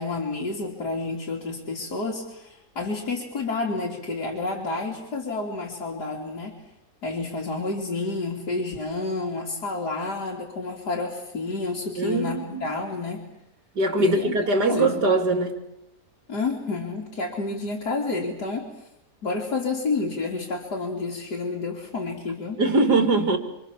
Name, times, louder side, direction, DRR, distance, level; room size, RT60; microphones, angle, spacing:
voice 1, 0.0-6.6 7.0-13.2 14.0-14.4 14.7-15.0 16.3-18.7 19.2-22.6, left 3 dB, 80° left, 3.7 m, -29 dB
voice 2, 12.0-12.7 13.8-15.5 22.6-23.4, right 2 dB, 85° right, 3.6 m, -22 dB
27.5 x 26.5 x 7.4 m
omnidirectional pair, 1.7 m